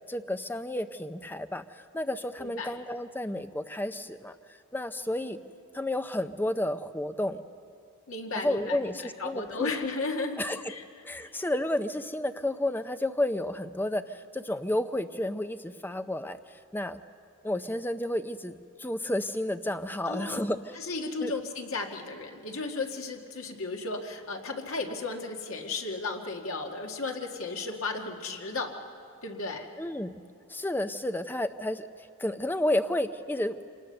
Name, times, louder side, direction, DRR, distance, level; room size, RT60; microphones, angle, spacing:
voice 1, 0.1-4.3 4.7-5.4 5.7-7.4 8.4-9.7 10.4-10.6 11.0-17.0 17.4-20.7 21.2-21.3 29.8-30.2 30.5-31.8 32.2-33.6, left 1 dB, 10° left, 9 dB, 0.5 m, -31 dB
voice 2, 2.4-2.7 8.1-10.4 10.7-10.8 11.2-11.3 20.1-20.5 20.8-28.7 29.2-29.7, left 3 dB, 65° left, 2 dB, 1.8 m, -34 dB
25.5 x 19.0 x 6.7 m, 2.4 s
head